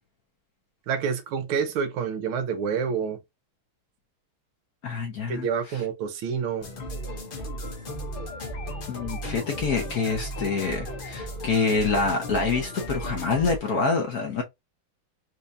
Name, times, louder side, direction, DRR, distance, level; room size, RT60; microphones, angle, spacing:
voice 1, 0.9-3.2 5.3-6.7, right 6 dB, 85° right, 1.6 m, -28 dB
voice 2, 4.8-5.5 8.9-14.4, left 4 dB, 55° left, 1.1 m, -26 dB
sound 1, 6.6-13.6, equal, 75° left, 0.4 m, -35 dB
4.5 x 2.5 x 2.6 m
omnidirectional pair, 2.3 m